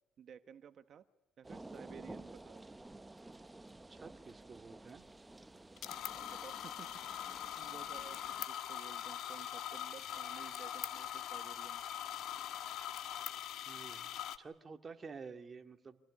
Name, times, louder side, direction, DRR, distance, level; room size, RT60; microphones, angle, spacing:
voice 1, 0.2-1.1 1.4-2.6 6.1-11.8, right 8 dB, 55° right, 10 dB, 1.2 m, -55 dB
sound 1, 1.4-8.5, right 2 dB, 15° right, 0.9 m, -53 dB
voice 2, 3.9-5.1 13.7-16.0, right 5 dB, 35° right, 5 dB, 2.2 m, -51 dB
sound 2, 5.8-14.4, left 10 dB, 75° left, 1.5 m, -42 dB
27.0 x 18.5 x 9.8 m, 1.0 s
cardioid pair, 90°, 0 cm